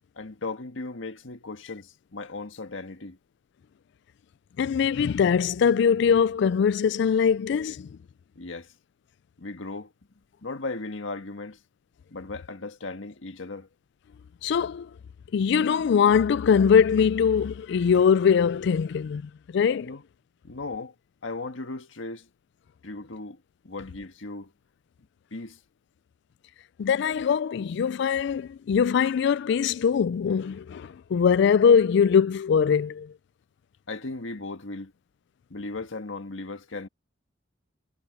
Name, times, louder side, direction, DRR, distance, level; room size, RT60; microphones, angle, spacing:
voice 1, 0.1-3.2 8.3-8.7 9.4-9.9 10.4-11.6 12.1-13.7 19.8-20.0 20.4-20.9 21.2-22.3 22.8-24.5 25.3-25.6 33.9-34.9 35.5-36.9, left 3 dB, 90° left, 1.6 m, -37 dB
voice 2, 4.6-7.9 14.4-14.9 15.3-19.9 26.8-33.1, left 7 dB, 65° left, 0.3 m, -22 dB
head